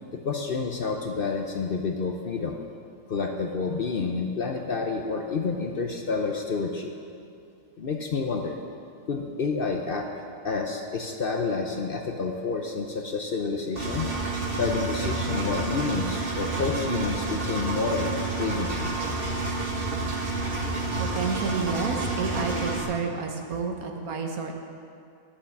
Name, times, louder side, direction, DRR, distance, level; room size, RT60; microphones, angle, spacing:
voice 1, 0.2-2.6 3.1-6.9 7.8-8.6 9.1-10.1 10.4-14.1 14.6-18.1 18.4-18.9, left 4 dB, 50° left, 3 dB, 0.7 m, -29 dB
Engine, 13.8-22.8, right 3 dB, 40° right, 1.5 m, -29 dB
voice 2, 21.0-24.5, right 4 dB, 80° right, 3 dB, 1.6 m, -30 dB
11.0 x 7.2 x 7.2 m, 2.4 s
omnidirectional pair, 1.5 m